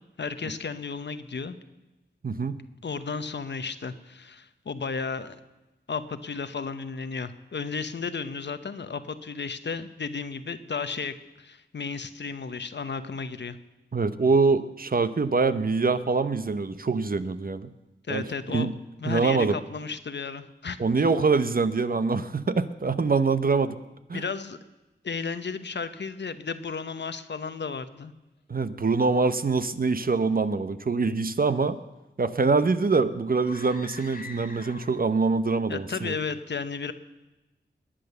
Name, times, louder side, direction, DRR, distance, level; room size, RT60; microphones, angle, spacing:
voice 1, 0.2-1.6 2.8-5.4 5.9-13.6 18.1-18.7 19.0-20.8 24.1-24.6 25.0-28.1 35.7-36.9, left 5 dB, 65° left, 11 dB, 1.0 m, -33 dB
voice 2, 2.2-2.6 13.9-17.7 18.1-18.2 18.5-18.7 19.1-19.6 20.8-23.8 24.1-24.2 28.5-31.8 32.2-36.2, right 4 dB, 50° right, 12 dB, 0.9 m, -24 dB
sound 1, 33.4-35.2, left 3 dB, 50° left, 2.0 m, -44 dB
20.5 x 8.9 x 6.9 m, 1.0 s
cardioid pair, 50°, 19 cm